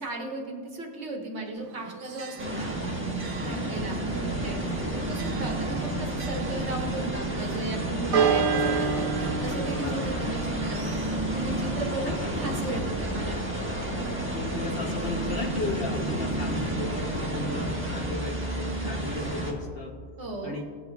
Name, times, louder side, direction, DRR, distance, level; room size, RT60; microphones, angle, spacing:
voice 1, 0.0-2.7 3.4-4.6 4.9-10.8 11.2-13.4 20.2-20.6, right 2 dB, 55° right, 0 dB, 1.5 m, -35 dB
Church bell, 1.6-16.6, right 6 dB, 85° right, 1.2 m, -34 dB
sound 1, 2.4-19.5, right 1 dB, 10° right, 1.1 m, -30 dB
voice 2, 3.4-3.9 9.7-10.0 11.6-12.3 14.3-20.0 20.4-20.6, left 3 dB, 50° left, 1 dB, 0.9 m, -35 dB
17.5 x 7.8 x 2.3 m, 2.1 s
omnidirectional pair, 1.4 m